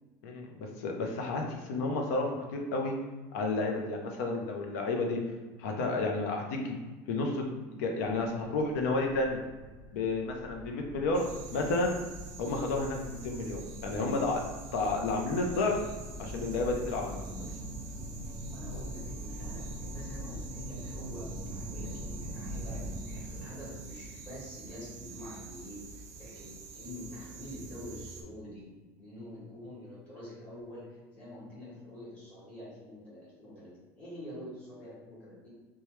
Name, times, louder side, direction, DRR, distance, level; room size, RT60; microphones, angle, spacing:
voice 1, 0.2-2.9 3.3-5.2 5.6-7.4 7.8-9.4 9.9-12.0 12.4-14.4 14.7-15.8 16.2-17.5, left 3 dB, 80° left, 2 dB, 0.6 m, -31 dB
sound 1, 8.5-25.0, equal, 10° right, 0.7 m, -43 dB
Bugs at night, 11.1-28.2, right 5 dB, 80° right, 0.5 m, -47 dB
voice 2, 18.5-28.7 28.9-33.7 34.0-35.5, left 1 dB, 15° left, -10 dB, 1.4 m, -46 dB
2.9 x 2.3 x 3.1 m, 1.2 s
cardioid pair, 170°, 8 cm